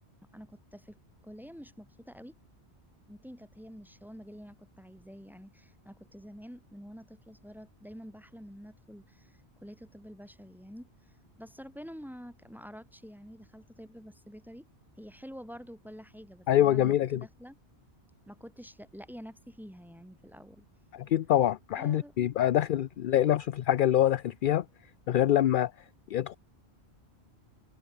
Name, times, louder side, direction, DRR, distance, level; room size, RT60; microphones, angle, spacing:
voice 1, 0.3-1.0 1.2-2.4 3.1-10.9 11.4-14.7 15.0-17.6 18.3-20.6 21.7-22.1, equal, ahead, 3.0 m, -48 dB
voice 2, 16.5-17.2 20.9-24.6 25.1-25.7 26.1-26.4, left 12 dB, 60° left, 0.6 m, -25 dB
omnidirectional pair, 1.1 m